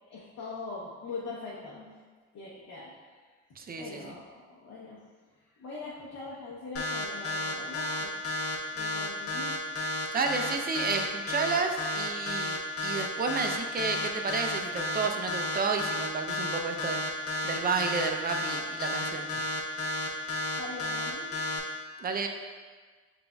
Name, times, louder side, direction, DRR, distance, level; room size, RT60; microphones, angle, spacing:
voice 1, 0.1-1.9 2.3-2.9 3.8-5.0 5.6-8.1 8.7-9.6 20.6-21.3, left 3 dB, 75° left, -6 dB, 0.9 m, -42 dB
voice 2, 3.6-4.1 10.1-12.6 12.8-17.0 17.4-19.3 22.0-22.3, right 4 dB, 30° right, 4 dB, 0.5 m, -31 dB
sound 1, 6.8-21.6, left 2 dB, 50° left, 0.8 m, -32 dB
7.5 x 2.6 x 2.3 m, 1.5 s
cardioid pair, 90°, 30 cm